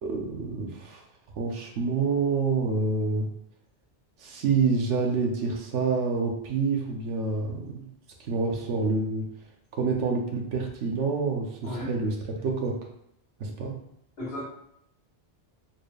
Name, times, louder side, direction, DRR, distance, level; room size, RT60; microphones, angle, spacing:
voice 1, 0.0-1.0 1.4-3.3 4.2-7.8 8.2-9.3 9.7-12.1 12.4-12.8 13.4-13.7, right 4 dB, 85° right, 1 dB, 1.1 m, -27 dB
voice 2, 11.6-12.0 14.2-14.5, left 1 dB, 60° left, -3 dB, 1.2 m, -34 dB
4.3 x 2.3 x 3.2 m, 0.75 s
omnidirectional pair, 1.2 m